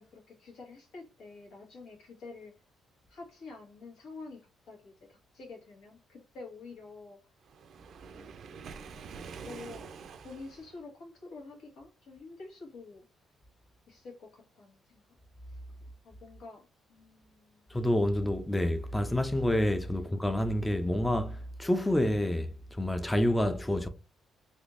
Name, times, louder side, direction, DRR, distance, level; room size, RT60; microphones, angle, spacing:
voice 1, 0.0-2.5 3.1-7.3 8.1-8.5 8.9-9.9 10.2-13.0 13.9-15.0 15.5-15.6 16.0-17.7 20.0-20.1, left 3 dB, 85° left, 1.6 m, -48 dB
Waves surf, 7.5-10.8, right 5 dB, 65° right, 0.4 m, -46 dB
voice 2, 17.7-23.9, left 1 dB, 10° left, 0.4 m, -28 dB
3.5 x 2.7 x 2.5 m
cardioid pair, 90°, 0 cm